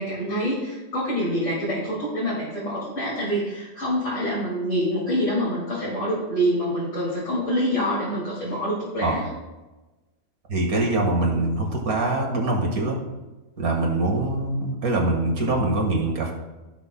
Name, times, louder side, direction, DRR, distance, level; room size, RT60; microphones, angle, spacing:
voice 1, 0.0-9.3, equal, 60° left, -8 dB, 2.7 m, -26 dB
voice 2, 10.5-13.0 13.6-16.3, right 2 dB, 85° right, 1 dB, 2.1 m, -23 dB
16.5 x 6.2 x 2.2 m, 1.1 s
omnidirectional pair, 1.5 m